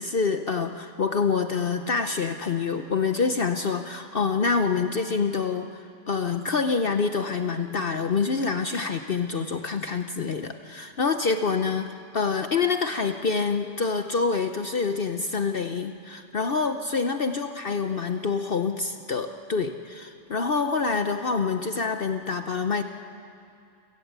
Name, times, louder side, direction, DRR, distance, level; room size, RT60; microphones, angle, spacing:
voice 1, 0.0-22.8, left 5 dB, 50° left, 7 dB, 0.9 m, -26 dB
29.5 x 17.0 x 8.2 m, 2.5 s
omnidirectional pair, 1.4 m